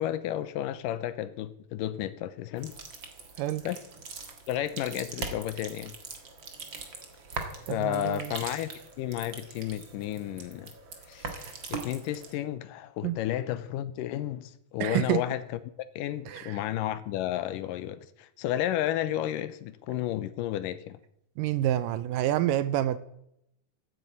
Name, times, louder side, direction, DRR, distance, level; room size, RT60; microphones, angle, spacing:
voice 1, 0.0-2.7 3.6-3.8 4.5-5.9 7.7-8.7 9.0-10.7 11.1-15.4 16.0-21.0, left 12 dB, 80° left, 2.3 m, -32 dB
sound 1, 2.6-12.3, right 4 dB, 45° right, 2.0 m, -41 dB
voice 2, 7.7-8.3 13.0-13.2 14.8-15.2 16.3-16.6 21.4-23.0, right 12 dB, 80° right, 2.3 m, -28 dB
13.5 x 9.5 x 8.5 m
omnidirectional pair, 3.9 m